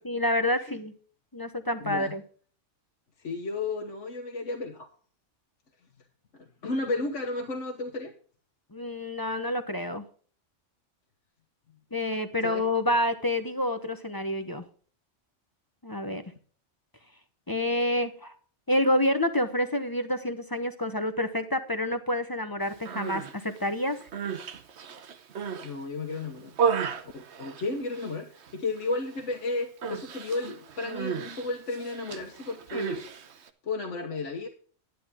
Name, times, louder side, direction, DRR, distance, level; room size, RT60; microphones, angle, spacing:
voice 1, 0.0-0.9 1.3-2.2 8.7-10.0 11.9-14.6 15.8-16.2 17.5-18.3 18.7-24.0, left 1 dB, 20° left, 9 dB, 0.8 m, -28 dB
voice 2, 1.8-2.2 3.2-4.9 6.3-8.1 12.4-12.7 25.6-26.5 27.1-33.1 33.6-34.5, left 3 dB, 80° left, 2 dB, 1.5 m, -33 dB
Human voice, 22.7-23.3 23.9-25.7 26.1-28.1 28.4-28.9 29.1-29.4 29.8-33.5, right 6 dB, 65° right, 1.2 m, -33 dB
10.5 x 10.5 x 3.6 m, 0.44 s
omnidirectional pair, 1.2 m